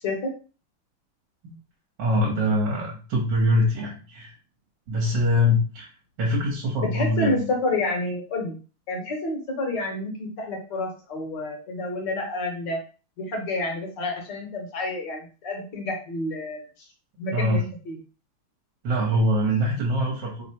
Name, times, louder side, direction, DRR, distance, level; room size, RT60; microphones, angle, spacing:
voice 1, 0.0-0.3 6.8-8.5 8.9-12.8 13.2-16.6 17.2-18.0, left 2 dB, 60° left, 1 dB, 1.6 m, -29 dB
voice 2, 2.0-4.3 4.9-5.9 6.2-7.5 17.3-17.6 18.8-20.5, left 1 dB, 60° right, -3 dB, 1.7 m, -23 dB
4.1 x 3.8 x 2.9 m, 0.35 s
omnidirectional pair, 2.4 m